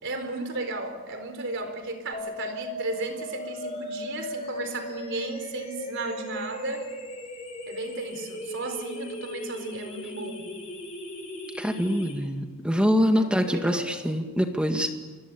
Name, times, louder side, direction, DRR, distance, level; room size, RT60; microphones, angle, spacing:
voice 1, 0.0-6.9 7.7-10.5 13.1-14.0, right 2 dB, 55° right, 7 dB, 4.2 m, -34 dB
sound 1, 2.1-12.1, left 1 dB, 30° left, 6.9 m, -37 dB
voice 2, 11.6-15.0, equal, 5° right, 5 dB, 1.9 m, -24 dB
27.0 x 22.0 x 8.5 m, 1.3 s
head